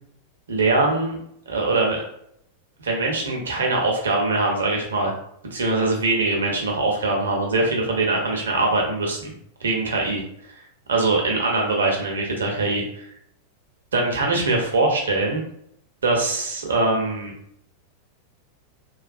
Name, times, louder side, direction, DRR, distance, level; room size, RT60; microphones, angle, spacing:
voice 1, 0.5-1.2 1.5-2.0 2.8-5.1 5.5-9.3 9.6-10.2 10.9-13.0 13.9-15.4 16.0-17.3, right 2 dB, 70° right, -1 dB, 0.8 m, -22 dB
3.1 x 2.2 x 2.6 m, 0.71 s
figure-of-eight pair, 90°, 0 cm